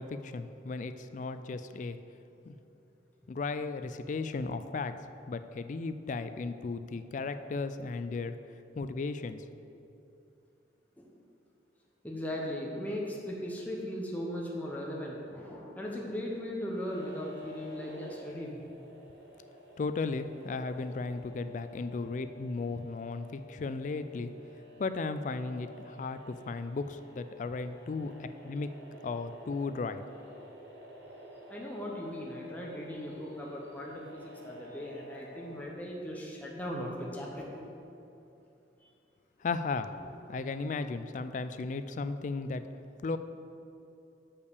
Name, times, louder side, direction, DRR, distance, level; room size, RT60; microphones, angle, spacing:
voice 1, 0.0-2.0 2.4-2.5 3.3-4.9 5.3-8.4 8.8-9.4 19.8-24.3 24.8-28.7 29.0-30.0 39.4-39.9 40.3-42.6 43.0-43.2, left 3 dB, 45° left, 11 dB, 0.3 m, -35 dB
voice 2, 12.0-18.6 31.5-37.7 38.8-38.9, equal, 10° left, -3 dB, 0.9 m, -38 dB
sound 1, 16.7-35.6, left 2 dB, 85° right, 1.6 m, -51 dB
6.6 x 5.6 x 6.7 m, 2.8 s
head